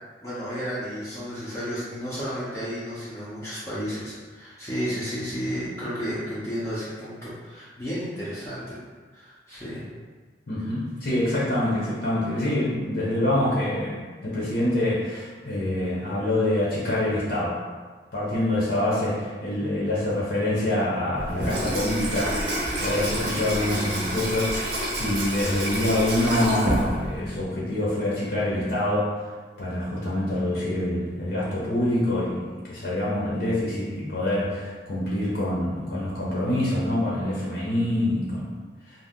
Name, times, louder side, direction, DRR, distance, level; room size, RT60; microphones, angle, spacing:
voice 1, 0.2-8.6 9.1-9.8, equal, 15° left, -10 dB, 0.5 m, -32 dB
voice 2, 10.5-17.6 18.1-22.4 22.7-29.2 29.6-38.6, left 1 dB, 60° left, -7 dB, 0.7 m, -26 dB
Water tap faucet / Sink (filling or washing), 21.1-27.4, right 1 dB, 70° right, 0.7 m, -28 dB
2.6 x 2.1 x 3.5 m, 1.4 s
head